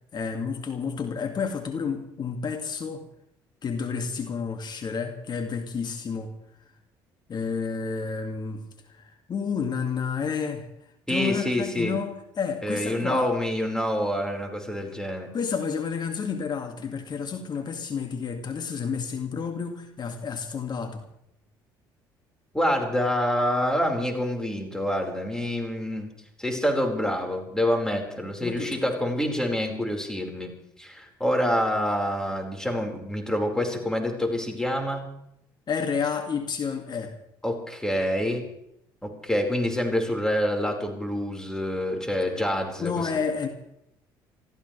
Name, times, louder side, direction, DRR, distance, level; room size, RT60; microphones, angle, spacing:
voice 1, 0.1-3.0 3.6-6.3 7.3-8.6 8.9-10.7 11.1-13.3 15.3-21.0 28.4-28.8 35.7-37.1 42.8-43.5, left 5 dB, 45° left, 5 dB, 2.2 m, -30 dB
voice 2, 11.1-11.9 12.6-15.3 22.5-26.1 26.4-30.5 30.8-35.0 37.4-38.4 39.0-43.1, equal, 5° left, 2 dB, 4.8 m, -27 dB
27.5 x 14.5 x 3.3 m, 0.79 s
hypercardioid pair, 65°, 11 cm